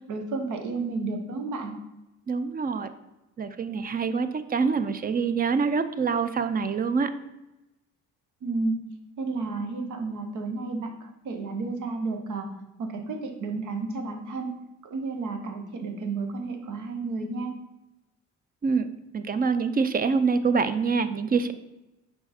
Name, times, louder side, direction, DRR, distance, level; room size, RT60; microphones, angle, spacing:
voice 1, 0.1-1.8 8.4-8.8 9.2-14.5 14.8-17.5, right 3 dB, 80° right, 5 dB, 1.0 m, -32 dB
voice 2, 2.3-2.9 3.4-7.1 18.6-18.9 19.1-21.5, right 5 dB, 30° right, 11 dB, 0.5 m, -25 dB
5.3 x 4.6 x 4.2 m, 0.96 s
cardioid pair, 90°, 30 cm